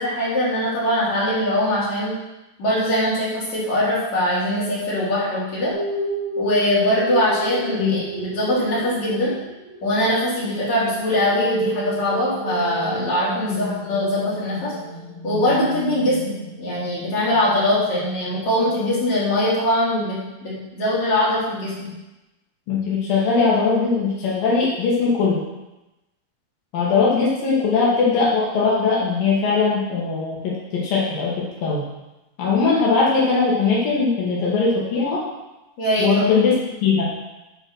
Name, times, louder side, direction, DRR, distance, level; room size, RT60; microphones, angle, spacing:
voice 1, 0.0-2.1 2.6-5.7 6.4-9.3 9.8-14.7 15.2-16.3 16.6-21.9 35.8-36.2, left 1 dB, 50° left, -8 dB, 4.8 m, -22 dB
sound 1, 5.7-18.8, right 1 dB, 75° right, 4.9 m, -32 dB
voice 2, 22.7-25.4 26.7-31.3 31.6-31.9 32.4-35.2 36.0-36.6 36.8-37.1, left 4 dB, 75° left, -5 dB, 3.4 m, -20 dB
12.0 x 4.5 x 6.1 m, 1.0 s
omnidirectional pair, 4.1 m